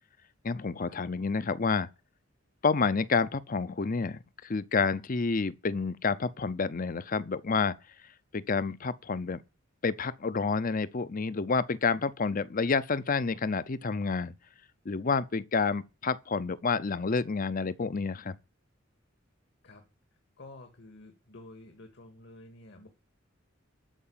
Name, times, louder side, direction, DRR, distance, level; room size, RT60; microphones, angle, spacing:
voice 1, 0.4-1.9 2.6-7.7 8.3-9.4 9.8-14.3 14.9-18.3, left 4 dB, 45° left, 0.6 m, -29 dB
voice 2, 20.4-22.9, left 2 dB, 60° left, 2.0 m, -50 dB
13.0 x 4.9 x 8.6 m
head